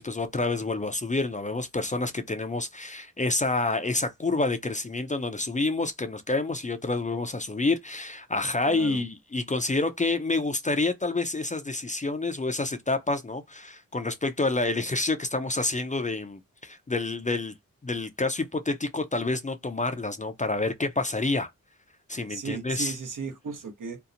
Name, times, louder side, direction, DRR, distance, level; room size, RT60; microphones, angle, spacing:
voice 1, 0.0-17.5 17.8-21.5 22.1-23.0, left 3 dB, 25° left, 0.4 m, -28 dB
voice 2, 8.7-9.0 22.3-24.0, right 5 dB, 65° right, 0.8 m, -35 dB
2.7 x 2.0 x 2.4 m
cardioid pair, 55°, 34 cm